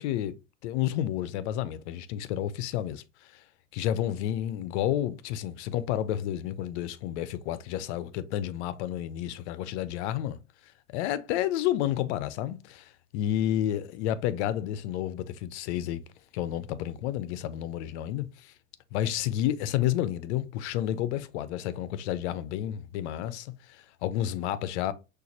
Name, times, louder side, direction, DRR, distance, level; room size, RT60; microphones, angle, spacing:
voice 1, 0.0-3.0 3.7-10.4 10.9-16.0 16.3-18.5 18.9-24.9, left 12 dB, 60° left, 0.7 m, -30 dB
6.3 x 2.6 x 2.9 m
hypercardioid pair, 90°, 37 cm